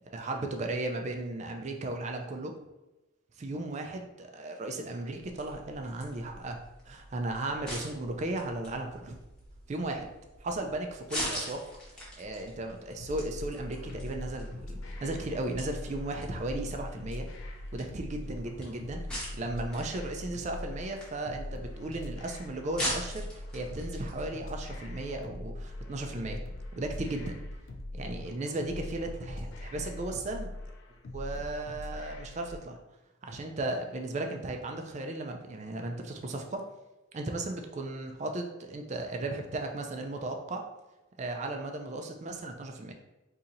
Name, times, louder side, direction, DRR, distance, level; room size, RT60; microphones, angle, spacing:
voice 1, 0.1-2.5 3.4-6.6 6.9-9.2 9.7-10.1 10.4-11.6 12.2-17.3 17.7-19.0 19.3-26.4 26.8-27.4 27.9-30.5 31.1-32.8 33.2-36.6 37.1-40.6 41.2-42.9, right 2 dB, 35° right, 4 dB, 0.3 m, -35 dB
sound 1, 5.2-24.3, equal, 5° left, 0.8 m, -43 dB
sound 2, 13.0-32.6, left 1 dB, 65° left, 0.4 m, -41 dB
4.1 x 2.8 x 2.5 m, 1.0 s
head